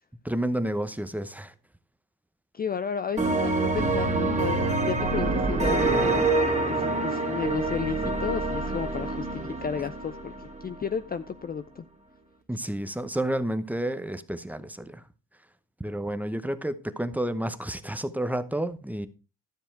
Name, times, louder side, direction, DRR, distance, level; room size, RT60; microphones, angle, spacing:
voice 1, 0.2-1.5 9.5-9.6 12.5-15.0 15.8-19.1, right 1 dB, 5° right, 0.8 m, -30 dB
voice 2, 2.5-6.3 6.7-11.8, left 7 dB, 30° left, 0.4 m, -33 dB
sound 1, 3.2-10.8, right 3 dB, 20° right, 1.9 m, -26 dB
12.5 x 7.0 x 4.5 m
cardioid pair, 125°, 33 cm